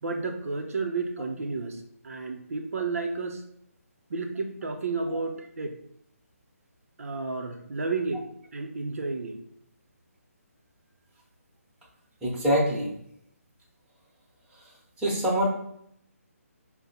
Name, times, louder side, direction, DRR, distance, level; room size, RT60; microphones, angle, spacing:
voice 1, 0.0-3.4 4.1-5.8 7.0-8.3 8.5-9.4, right 3 dB, 65° right, 3 dB, 0.6 m, -32 dB
voice 2, 12.2-12.9 15.0-15.5, equal, 10° right, -6 dB, 1.0 m, -24 dB
5.5 x 2.1 x 4.1 m, 0.72 s
figure-of-eight pair, 145°, 8 cm